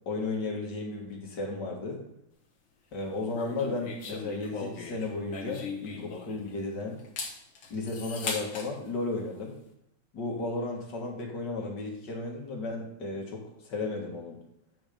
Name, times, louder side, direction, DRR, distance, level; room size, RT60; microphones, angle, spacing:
voice 1, 0.1-2.0 2.9-7.0 7.7-9.6 10.1-14.4, left 3 dB, 55° left, 0 dB, 2.1 m, -34 dB
sound 1, 3.3-6.6 7.0-8.7, left 4 dB, 70° left, 2.0 m, -38 dB
9.4 x 4.9 x 5.1 m, 0.78 s
omnidirectional pair, 2.3 m